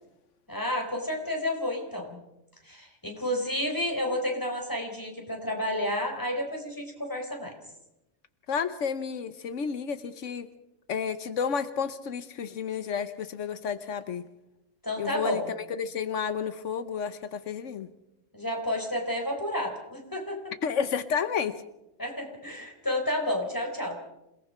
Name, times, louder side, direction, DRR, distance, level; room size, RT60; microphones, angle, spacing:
voice 1, 0.5-2.2 2.6-7.5 14.8-15.5 18.3-20.5 22.0-24.0, left 1 dB, 15° left, 2 dB, 4.2 m, -31 dB
voice 2, 8.5-10.5 10.9-14.2 15.0-17.9 20.6-21.5, left 6 dB, 85° left, 12 dB, 1.3 m, -31 dB
27.5 x 18.5 x 5.6 m, 0.91 s
omnidirectional pair, 1.2 m